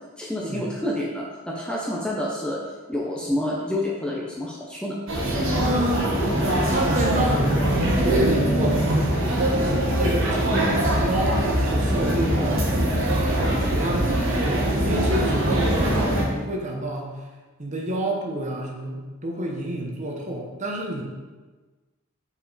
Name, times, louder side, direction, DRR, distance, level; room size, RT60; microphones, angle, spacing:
voice 1, 0.2-2.6 2.9-5.0 6.9-7.0, left 1 dB, 5° left, -3 dB, 0.6 m, -28 dB
sound 1, 5.1-16.2, right 1 dB, 60° right, 1.4 m, -22 dB
voice 2, 5.5-6.1 6.7-9.1 9.5-12.6 13.3-17.2 17.6-21.0, right 1 dB, 35° right, 1 dB, 0.9 m, -29 dB
5.5 x 4.9 x 4.1 m, 1.3 s
head